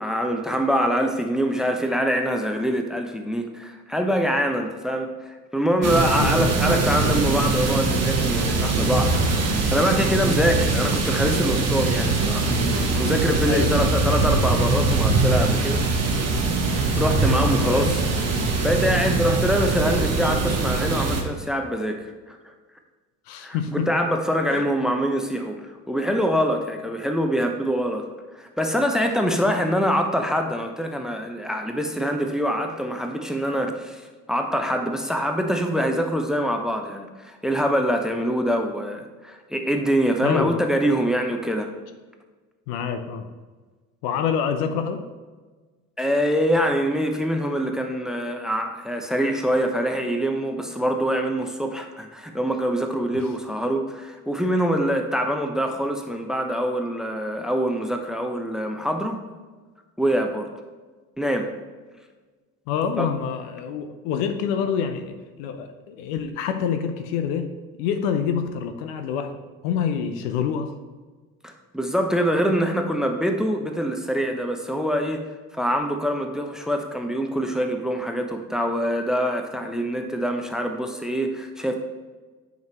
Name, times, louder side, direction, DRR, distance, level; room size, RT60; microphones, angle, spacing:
voice 1, 0.0-9.2 9.5-16.2 16.9-18.0 18.6-22.4 23.4-28.1 28.4-34.0 34.3-41.7 46.0-59.2 60.0-60.5 61.2-61.5 63.0-63.1 71.4-75.2 75.5-81.8, equal, ahead, 5 dB, 0.8 m, -24 dB
sound 1, 5.8-21.2, right 3 dB, 35° right, 1.2 m, -22 dB
voice 2, 6.1-6.5 13.4-13.8 17.6-17.9 23.3-23.9 24.4-24.6 40.2-40.6 42.7-43.3 44.0-45.0 62.7-67.5 67.8-69.4 69.6-70.7, left 7 dB, 65° left, 8 dB, 0.8 m, -27 dB
9.2 x 5.2 x 3.0 m, 1.3 s
figure-of-eight pair, 60°, 43 cm